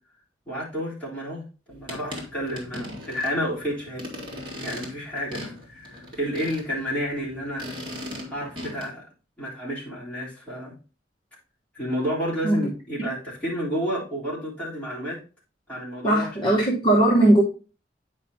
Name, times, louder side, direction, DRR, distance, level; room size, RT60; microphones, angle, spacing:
voice 1, 0.5-4.0 4.6-7.8 8.3-9.0 9.4-10.7 11.7-15.2 15.7-16.6, equal, 5° left, 3.6 m, -31 dB
sound 1, 1.7-8.8, left 1 dB, 30° right, 2.4 m, -39 dB
voice 2, 16.0-17.4, right 1 dB, 25° left, 1.2 m, -19 dB
9.3 x 5.2 x 2.8 m
head